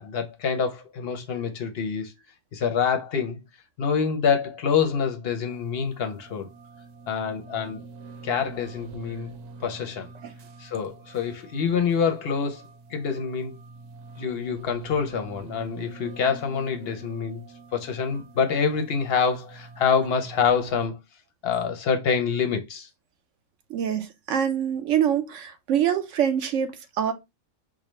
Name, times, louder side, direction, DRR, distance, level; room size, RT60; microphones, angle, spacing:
voice 1, 0.0-2.1 2.5-3.4 3.8-6.5 7.1-7.8 8.2-9.3 9.6-10.1 10.6-13.6 14.2-17.4 17.7-21.0 21.4-22.9, left 6 dB, 55° left, 0.7 m, -26 dB
sound 1, 5.5-20.9, right 3 dB, 90° right, 1.2 m, -45 dB
voice 2, 23.7-27.1, right 9 dB, 60° right, 0.9 m, -25 dB
4.8 x 2.1 x 3.0 m
omnidirectional pair, 1.5 m